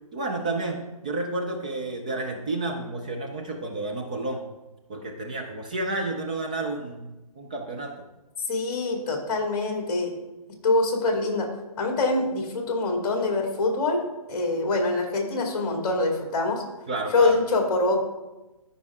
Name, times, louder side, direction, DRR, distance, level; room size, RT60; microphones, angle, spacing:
voice 1, 0.1-4.4 4.9-8.0 16.9-17.4, right 2 dB, 15° right, 2 dB, 0.3 m, -31 dB
voice 2, 8.5-10.1 10.6-11.5 11.8-14.0 14.3-16.6 17.1-18.0, left 2 dB, 35° left, 2 dB, 2.2 m, -24 dB
13.5 x 5.3 x 3.5 m, 1.1 s
hypercardioid pair, 160°, 19 cm